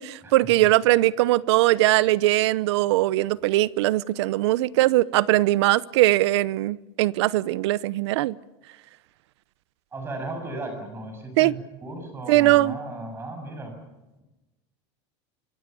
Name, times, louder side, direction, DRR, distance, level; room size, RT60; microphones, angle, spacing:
voice 1, 0.0-8.4 11.4-11.5 12.3-12.8, right 17 dB, 75° right, 0.8 m, -21 dB
voice 2, 9.9-13.8, right 2 dB, 15° right, 7.1 m, -35 dB
26.0 x 23.5 x 7.0 m
supercardioid pair, 160°, 14 cm